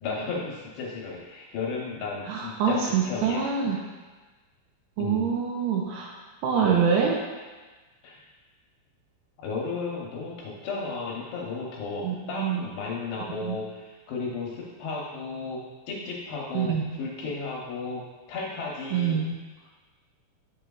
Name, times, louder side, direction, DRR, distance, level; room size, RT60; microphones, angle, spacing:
voice 1, 0.0-3.4 5.0-5.3 8.0-8.2 9.4-18.0 18.3-19.2, left 4 dB, 75° left, -4 dB, 2.6 m, -34 dB
voice 2, 2.3-3.8 5.0-6.1 6.4-7.2 12.0-12.7 13.3-13.6 16.5-16.9 18.9-19.3, right 6 dB, 80° right, -2 dB, 2.6 m, -25 dB
8.8 x 6.1 x 2.3 m, 1.3 s
omnidirectional pair, 5.4 m